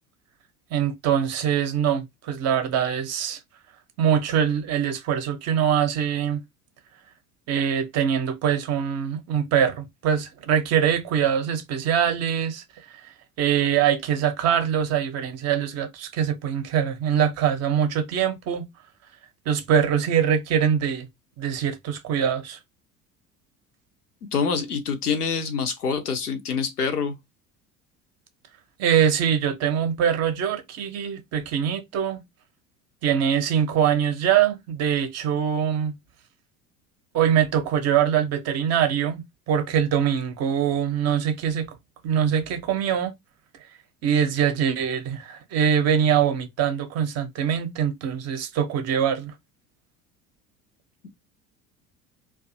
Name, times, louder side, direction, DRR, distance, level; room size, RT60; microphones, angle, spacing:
voice 1, 0.7-3.4 4.0-6.4 7.5-12.6 13.4-18.6 19.5-21.1 21.4-22.6 28.8-32.2 33.0-35.9 37.1-41.7 42.0-43.1 44.0-49.3, right 8 dB, 35° right, 0.6 m, -23 dB
voice 2, 24.3-27.2, left 5 dB, 85° left, 0.6 m, -26 dB
2.5 x 2.3 x 2.6 m
figure-of-eight pair, 70°, 44 cm